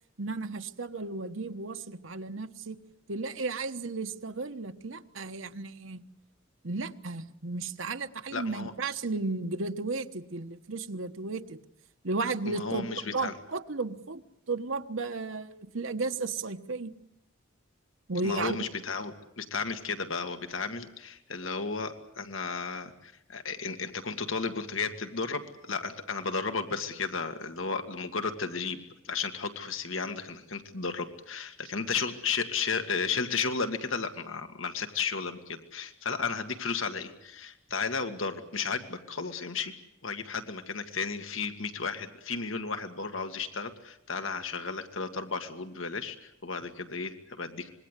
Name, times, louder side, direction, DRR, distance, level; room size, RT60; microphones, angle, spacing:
voice 1, 0.2-2.8 3.1-6.0 6.6-11.6 12.0-12.9 13.1-14.2 14.5-16.9 18.1-18.6, right 3 dB, 80° right, 8 dB, 1.2 m, -34 dB
voice 2, 8.3-8.7 12.5-13.3 18.2-19.1 19.4-28.8 29.0-39.8 40.0-47.7, left 5 dB, 85° left, 7 dB, 2.0 m, -33 dB
26.0 x 21.5 x 8.3 m, 0.79 s
head